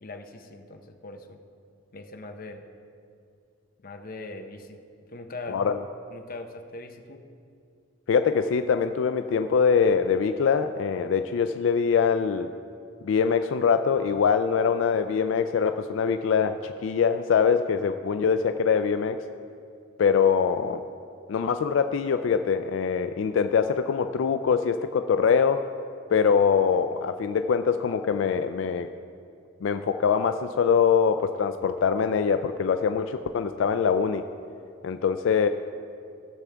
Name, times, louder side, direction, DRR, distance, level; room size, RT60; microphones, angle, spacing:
voice 1, 0.0-1.4 1.9-2.6 3.8-4.8 5.1-5.6 6.1-7.2, left 2 dB, 50° left, 5 dB, 0.7 m, -41 dB
voice 2, 5.5-5.8 8.1-12.5 13.0-19.2 20.0-20.8 21.3-25.7 26.1-28.9 29.6-34.2 34.8-35.5, left 6 dB, 85° left, 9 dB, 0.4 m, -23 dB
17.0 x 7.2 x 3.4 m, 2.4 s
head